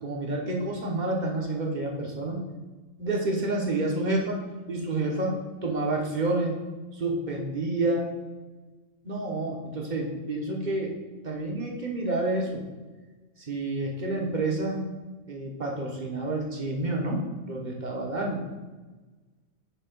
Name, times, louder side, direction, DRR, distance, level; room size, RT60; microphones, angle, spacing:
voice 1, 0.0-2.4 3.0-4.4 4.7-6.6 6.9-8.1 9.0-10.9 11.2-12.6 13.4-15.0 15.3-18.4, right 2 dB, 40° right, -1 dB, 1.1 m, -29 dB
9.0 x 3.0 x 5.9 m, 1.3 s
omnidirectional pair, 1.3 m